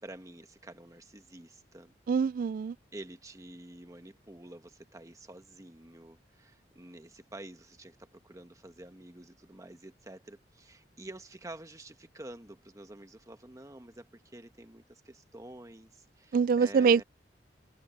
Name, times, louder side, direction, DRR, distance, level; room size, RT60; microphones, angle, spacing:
voice 1, 0.0-1.9 2.9-17.0, right 1 dB, 20° right, 1.2 m, -49 dB
voice 2, 2.1-2.8 16.3-17.0, right 5 dB, 50° right, 0.3 m, -24 dB
head